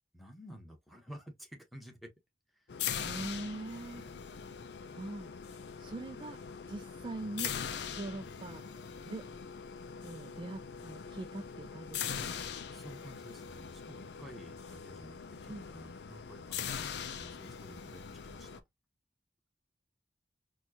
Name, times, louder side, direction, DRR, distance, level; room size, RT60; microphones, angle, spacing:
voice 1, 0.1-2.1 2.5-2.7 4.0-4.2 12.7-16.9 17.1-18.6, equal, ahead, 1.0 m, -52 dB
sound 1, 2.7-18.6, left 7 dB, 70° left, 0.5 m, -42 dB
voice 2, 3.0-4.0 4.9-6.4 6.7-7.5 8.0-8.6 9.1-9.3 10.0-12.4 15.5-15.7, right 2 dB, 30° right, 0.3 m, -43 dB
4.3 x 2.3 x 2.8 m
head